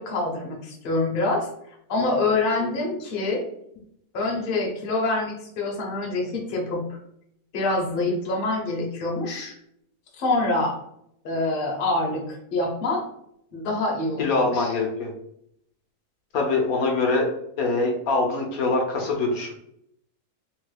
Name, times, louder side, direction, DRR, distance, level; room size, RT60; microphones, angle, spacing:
voice 1, 0.0-1.5 1.9-3.4 4.1-7.0 7.5-9.6 10.2-10.7 11.2-13.0 13.5-14.7, left 2 dB, 45° left, -1 dB, 0.8 m, -26 dB
voice 2, 14.2-15.1 16.3-17.3 17.6-19.5, left 3 dB, 70° left, 0 dB, 1.0 m, -23 dB
3.0 x 2.2 x 3.2 m, 0.73 s
omnidirectional pair, 1.7 m